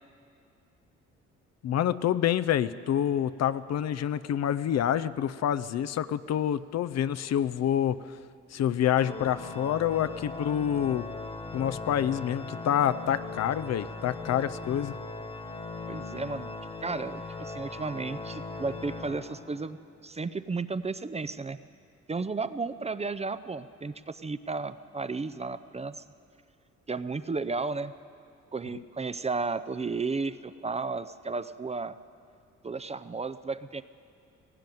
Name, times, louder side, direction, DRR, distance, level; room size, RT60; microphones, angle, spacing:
voice 1, 1.6-8.2 8.5-11.1 11.5-15.0, left 10 dB, 60° left, 13 dB, 0.6 m, -27 dB
Organ, 9.0-19.8, left 3 dB, 20° left, 1.5 m, -39 dB
voice 2, 15.9-16.6 16.8-19.8 20.0-21.6 22.1-26.0 26.9-27.9 28.5-32.0 32.6-33.8, right 4 dB, 20° right, 13 dB, 0.6 m, -33 dB
18.0 x 16.0 x 9.2 m, 2.5 s
cardioid pair, 90°, 30 cm